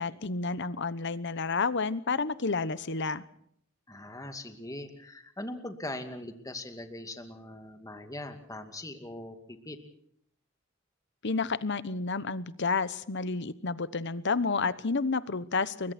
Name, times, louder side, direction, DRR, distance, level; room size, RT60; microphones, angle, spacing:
voice 1, 0.0-3.2 11.2-15.9, left 4 dB, 60° left, 16 dB, 1.1 m, -30 dB
voice 2, 3.9-9.8, left 1 dB, 15° left, 7 dB, 2.4 m, -41 dB
29.5 x 23.0 x 4.4 m, 0.68 s
head